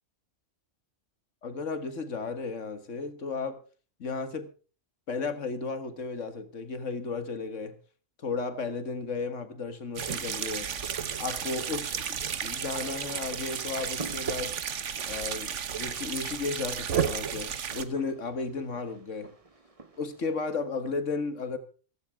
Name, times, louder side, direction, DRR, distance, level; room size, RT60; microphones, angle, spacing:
voice 1, 1.4-3.6 4.0-4.5 5.1-7.8 8.2-10.7 11.2-14.6 15.1-19.3 20.0-21.6, left 4 dB, 75° left, 1.8 m, -34 dB
sound 1, 10.0-17.8, right 8 dB, 70° right, 1.4 m, -33 dB
sound 2, 13.1-20.3, right 3 dB, 30° right, 1.3 m, -50 dB
15.5 x 15.0 x 3.5 m
omnidirectional pair, 1.3 m